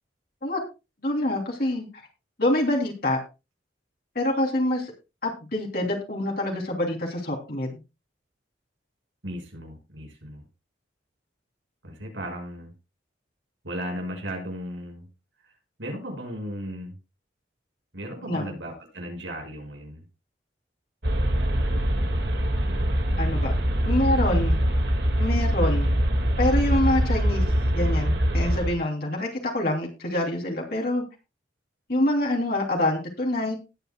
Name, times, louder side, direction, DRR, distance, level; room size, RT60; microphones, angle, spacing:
voice 1, 1.0-1.9 2.4-3.2 4.1-4.9 5.2-7.8 18.2-18.5 23.2-23.5 23.8-24.6 25.2-25.9 26.4-27.4 27.7-31.0 31.9-33.5, left 1 dB, 55° left, 0 dB, 3.1 m, -26 dB
voice 2, 9.2-10.4 11.8-12.7 13.6-15.1 15.4-15.5 15.8-17.0 17.9-20.0, equal, 85° right, 2 dB, 5.8 m, -36 dB
sound 1, 21.0-28.8, equal, 60° right, 2.0 m, -23 dB
19.5 x 9.3 x 2.3 m, 0.28 s
head